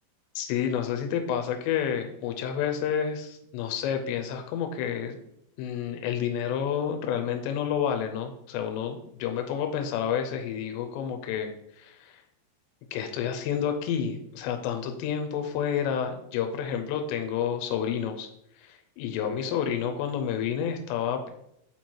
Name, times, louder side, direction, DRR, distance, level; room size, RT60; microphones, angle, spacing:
voice 1, 0.4-5.2 5.6-11.5 11.8-12.2 12.9-18.3 18.6-21.3, left 8 dB, 90° left, 5 dB, 2.9 m, -29 dB
7.5 x 4.6 x 4.4 m, 0.78 s
omnidirectional pair, 5.0 m